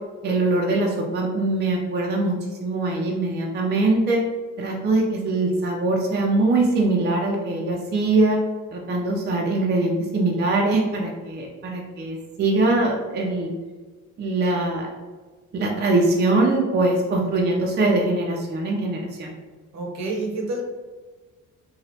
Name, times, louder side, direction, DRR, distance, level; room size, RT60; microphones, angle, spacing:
voice 1, 0.2-2.3 2.6-4.2 4.6-8.4 8.7-13.5 14.2-14.9 15.5-19.3, right 2 dB, 35° right, -1 dB, 0.5 m, -22 dB
voice 2, 19.7-20.6, right 2 dB, 60° right, 0 dB, 0.8 m, -28 dB
3.0 x 2.3 x 2.8 m, 1.3 s
cardioid pair, 90°, 30 cm